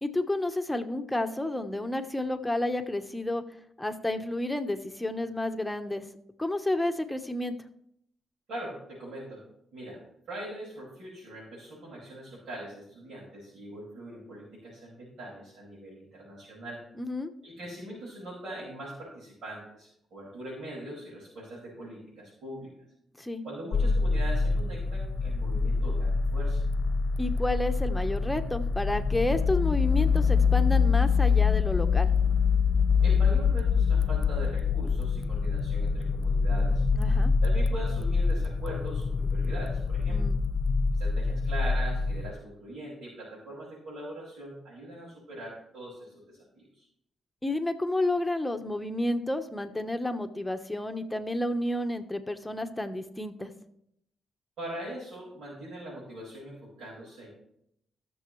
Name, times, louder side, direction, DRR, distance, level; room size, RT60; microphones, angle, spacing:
voice 1, 0.0-3.4 3.8-6.0 6.4-7.5 17.0-17.3 23.2-23.4 27.2-32.1 36.9-37.3 40.1-40.4 47.4-53.5, left 1 dB, 10° left, 7 dB, 1.1 m, -30 dB
voice 2, 8.5-9.4 9.7-10.0 10.3-16.8 17.4-22.7 23.4-26.6 33.0-36.8 37.4-40.2 40.9-46.9 54.6-57.3, right 1 dB, 75° right, -7 dB, 5.6 m, -41 dB
sound 1, 23.7-42.3, left 5 dB, 50° left, 0.8 m, -25 dB
20.5 x 7.0 x 3.2 m, 0.74 s
cardioid pair, 65°, 0 cm